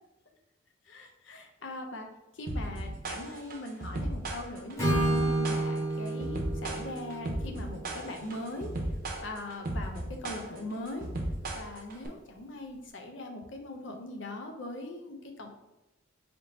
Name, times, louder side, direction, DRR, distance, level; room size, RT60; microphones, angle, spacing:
voice 1, 0.8-2.1 2.3-8.7 9.2-11.1 11.5-15.5, left 1 dB, 70° left, 4 dB, 0.6 m, -41 dB
sound 1, 2.5-12.1, right 1 dB, 50° right, 0.7 m, -35 dB
Acoustic guitar / Strum, 4.8-8.7, right 1 dB, 15° left, 1.2 m, -31 dB
3.5 x 2.8 x 4.0 m, 1.0 s
head